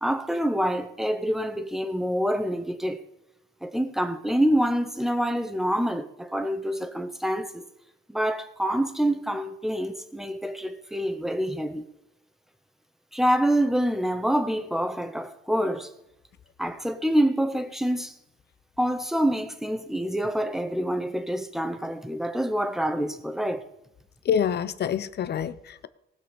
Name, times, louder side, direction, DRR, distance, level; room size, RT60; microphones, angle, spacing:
voice 1, 0.0-3.0 3.6-7.6 8.1-11.8 13.1-15.9 16.6-18.1 18.8-23.7, equal, ahead, 1.3 m, -26 dB
voice 2, 24.2-25.9, left 8 dB, 55° left, 0.8 m, -26 dB
18.5 x 6.2 x 5.3 m
cardioid pair, 90°, 20 cm